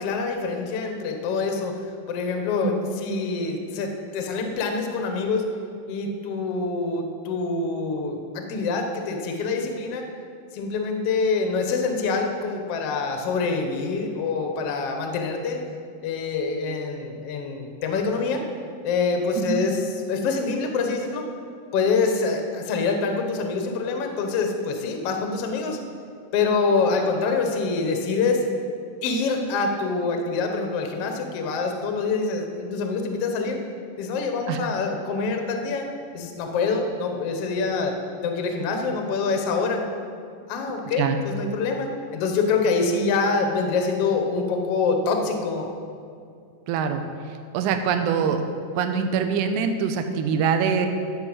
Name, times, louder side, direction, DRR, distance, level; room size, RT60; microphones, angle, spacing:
voice 1, 0.0-1.7 2.1-5.5 5.9-10.1 10.5-15.6 16.0-18.4 18.8-19.8 20.1-21.2 21.7-25.8 26.3-28.4 29.0-33.6 34.0-35.9 36.1-37.9 38.2-39.8 40.5-45.7, left 4 dB, 75° left, 4 dB, 1.4 m, -25 dB
voice 2, 46.7-47.0 47.5-48.4 48.8-50.9, right 6 dB, 75° right, 6 dB, 1.9 m, -23 dB
13.5 x 5.5 x 7.8 m, 2.4 s
omnidirectional pair, 4.4 m